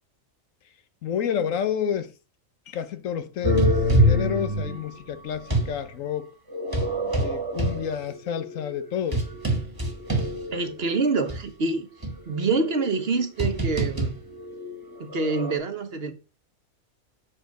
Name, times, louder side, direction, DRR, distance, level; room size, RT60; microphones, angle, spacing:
voice 1, 1.0-2.1 2.7-6.3 7.2-9.3, left 8 dB, 75° left, 1.2 m, -30 dB
sound 1, 3.4-5.7 6.5-10.9 11.3-11.4 12.0-15.6, equal, 15° right, 1.5 m, -26 dB
voice 2, 10.5-11.9 12.3-14.2 15.0-16.1, right 3 dB, 50° right, 1.1 m, -26 dB
7.3 x 4.3 x 5.1 m
omnidirectional pair, 1.4 m